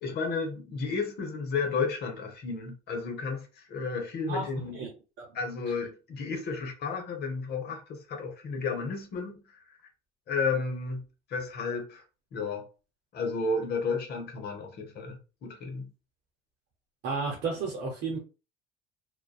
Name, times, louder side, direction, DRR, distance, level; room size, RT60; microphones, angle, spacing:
voice 1, 0.0-4.8 5.3-9.8 10.3-11.0 11.3-12.0 12.3-12.7 13.1-15.9, left 4 dB, 55° left, 0.9 m, -32 dB
voice 2, 4.3-5.3 17.0-18.2, right 4 dB, 60° right, 0.7 m, -33 dB
2.5 x 2.2 x 2.3 m
supercardioid pair, 95°, 20 cm